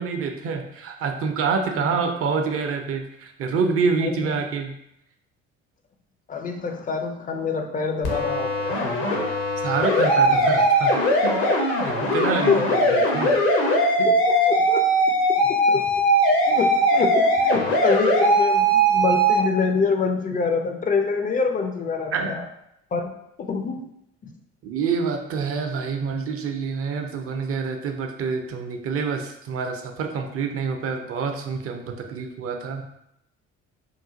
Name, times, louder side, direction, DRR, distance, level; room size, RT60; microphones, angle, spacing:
voice 1, 0.0-4.7 9.6-11.3 11.8-13.3 14.0-14.1 22.1-22.4 24.6-31.8 32.1-32.9, right 5 dB, 40° right, 4 dB, 0.5 m, -27 dB
voice 2, 4.0-4.4 6.3-8.8 12.2-12.8 14.3-14.8 15.5-15.9 16.5-22.4 22.9-23.1 23.4-23.9 24.2-24.3, left 5 dB, 25° left, 4 dB, 0.4 m, -26 dB
sound 1, 8.0-19.4, right 1 dB, 65° left, 0.8 m, -20 dB
3.0 x 2.4 x 3.7 m, 0.79 s
figure-of-eight pair, 45°, 36 cm